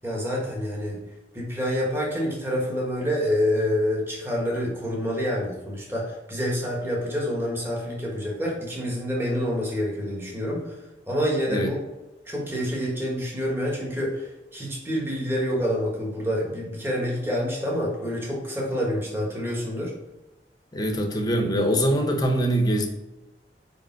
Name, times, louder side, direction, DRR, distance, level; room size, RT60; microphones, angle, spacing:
voice 1, 0.0-1.0 1.3-10.7 11.1-11.8 12.3-19.9, equal, 15° right, -3 dB, 1.5 m, -27 dB
voice 2, 20.7-22.9, right 1 dB, 20° left, 3 dB, 0.9 m, -23 dB
5.2 x 5.1 x 4.6 m, 1.0 s
head